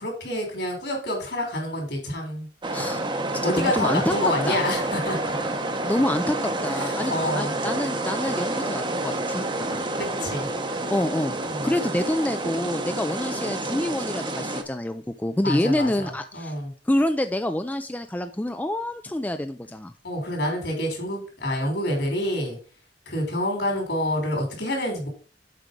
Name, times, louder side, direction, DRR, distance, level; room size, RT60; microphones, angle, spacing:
voice 1, 0.0-2.5 3.4-5.7 6.8-7.6 10.2-10.5 11.4-11.7 15.4-16.7 20.0-22.6 23.1-25.1, left 1 dB, 70° left, 1 dB, 3.5 m, -28 dB
sound 1, 2.6-14.6, right 2 dB, 25° right, 0.8 m, -28 dB
voice 2, 3.4-4.1 4.5-4.6 5.9-6.4 6.6-9.8 10.9-11.4 11.6-16.5 16.9-19.9, left 1 dB, 10° left, 8 dB, 0.4 m, -27 dB
7.6 x 4.7 x 5.1 m, 0.39 s
head